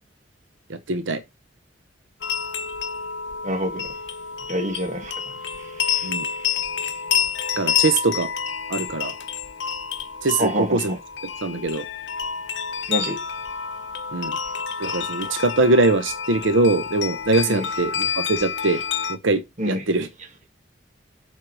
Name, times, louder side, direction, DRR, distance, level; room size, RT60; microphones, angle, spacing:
voice 1, 0.7-1.2 6.0-6.3 7.6-8.3 8.7-9.1 10.2-11.0 11.4-11.8 14.1-14.4 14.8-18.8 19.1-20.1, right 2 dB, 85° right, 0.9 m, -22 dB
sound 1, 2.2-19.2, left 7 dB, 70° left, 0.9 m, -28 dB
voice 2, 3.4-3.8 4.5-6.6 10.4-11.0 12.9-13.2 17.5-17.6 19.6-19.8, equal, 40° right, 2.0 m, -28 dB
7.5 x 5.4 x 4.9 m
head